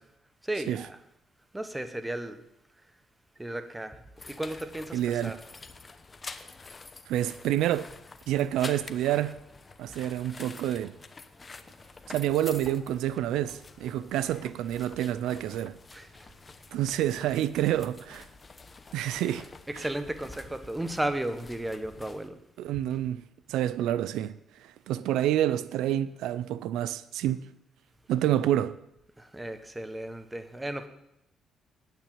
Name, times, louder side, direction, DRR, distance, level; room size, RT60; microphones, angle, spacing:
voice 1, 0.4-1.0 1.5-2.4 3.4-4.0 4.3-5.4 12.7-12.8 15.9-16.1 19.7-22.4 29.2-30.9, right 1 dB, 10° right, 1.4 m, -34 dB
sound 1, 4.2-22.3, left 4 dB, 30° left, 1.0 m, -48 dB
voice 2, 4.9-5.4 7.1-7.9 8.3-9.4 9.8-11.0 12.1-15.8 16.7-18.3 18.9-19.5 19.7-19.8 22.6-23.2 23.5-24.3 24.6-27.5 28.1-28.8, right 12 dB, 90° right, 0.4 m, -28 dB
9.3 x 9.2 x 8.9 m
cardioid pair, 90°, 0 cm